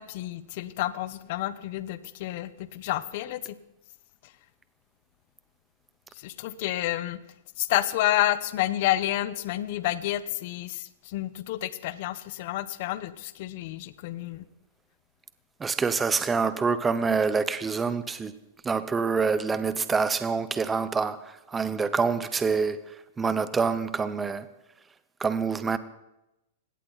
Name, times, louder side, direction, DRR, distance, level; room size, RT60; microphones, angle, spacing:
voice 1, 0.0-3.5 4.2-4.3 6.1-7.2 7.6-14.5, left 15 dB, 45° left, 0.9 m, -29 dB
voice 2, 15.6-18.3 18.6-24.5 25.2-25.8, right 5 dB, 10° right, 0.8 m, -26 dB
20.0 x 17.0 x 4.1 m
hypercardioid pair, 155°, 0 cm